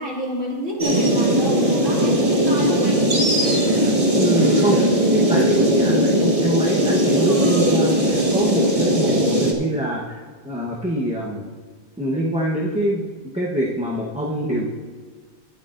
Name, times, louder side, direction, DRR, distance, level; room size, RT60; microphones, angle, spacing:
voice 1, 0.0-3.1 7.3-7.7, equal, 60° right, -4 dB, 2.9 m, -29 dB
sound 1, 0.8-9.5, right 1 dB, 25° right, 1.5 m, -19 dB
voice 2, 4.1-11.4 12.0-13.0 13.3-14.7, right 1 dB, 5° right, -5 dB, 0.9 m, -24 dB
21.0 x 8.5 x 2.6 m, 1.5 s
omnidirectional pair, 1.4 m